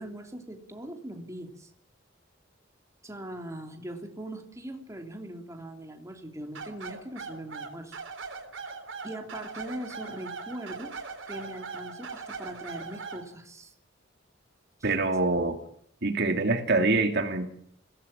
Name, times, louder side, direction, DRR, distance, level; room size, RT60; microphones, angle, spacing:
voice 1, 0.0-1.7 3.0-8.0 9.0-10.9 11.3-13.7, right 1 dB, 15° right, 3 dB, 3.1 m, -40 dB
sound 1, 6.5-13.3, right 4 dB, 90° right, 3.6 m, -40 dB
voice 2, 14.8-15.6 16.0-17.5, right 3 dB, 60° right, 6 dB, 2.6 m, -25 dB
22.5 x 17.5 x 8.9 m, 0.66 s
head